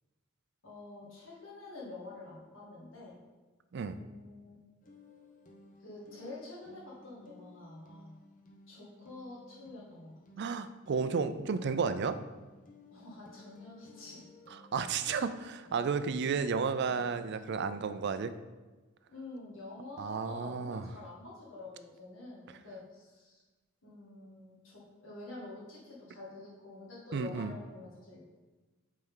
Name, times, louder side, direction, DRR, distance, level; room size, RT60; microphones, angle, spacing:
voice 1, 0.6-3.2 3.8-4.5 5.8-8.1 8.7-10.2 12.9-14.2 14.9-15.0 16.1-16.3 19.1-23.4 23.8-28.4, left 2 dB, 65° left, -6 dB, 2.2 m, -48 dB
sound 1, 4.8-18.3, left 2 dB, 40° left, 0.8 m, -58 dB
voice 2, 10.4-12.2 14.7-18.3 20.0-20.8 27.1-27.6, right 5 dB, 55° right, 11 dB, 0.4 m, -32 dB
7.7 x 4.2 x 3.8 m, 1.2 s
head